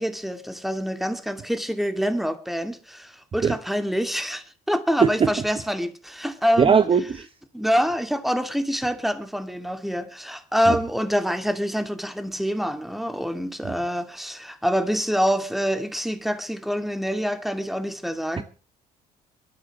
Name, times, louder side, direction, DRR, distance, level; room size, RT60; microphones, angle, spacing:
voice 1, 0.0-6.8 7.5-18.4, equal, ahead, 2.4 m, -26 dB
voice 2, 6.6-7.3 10.7-10.8 13.6-13.7, right 6 dB, 35° right, 1.0 m, -19 dB
22.5 x 12.5 x 3.1 m
supercardioid pair, 85°, 17 cm